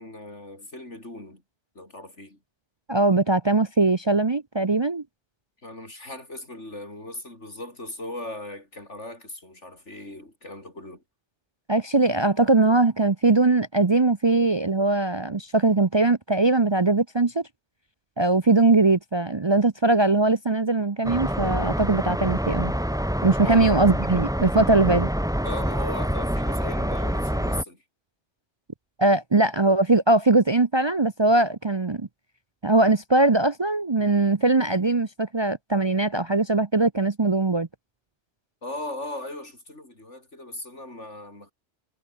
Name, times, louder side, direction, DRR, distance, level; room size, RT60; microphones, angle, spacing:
voice 1, 0.0-1.4 1.7-2.4 5.6-11.0 23.4-23.7 25.4-27.8 38.6-41.5, left 1 dB, 80° left, 7.5 m, -38 dB
voice 2, 2.9-5.0 11.7-17.4 18.2-22.7 23.2-25.1 29.0-32.1 32.6-37.7, right 2 dB, 25° right, 0.7 m, -21 dB
sound 1, 21.0-27.6, equal, 5° right, 1.7 m, -26 dB
omnidirectional pair, 1.2 m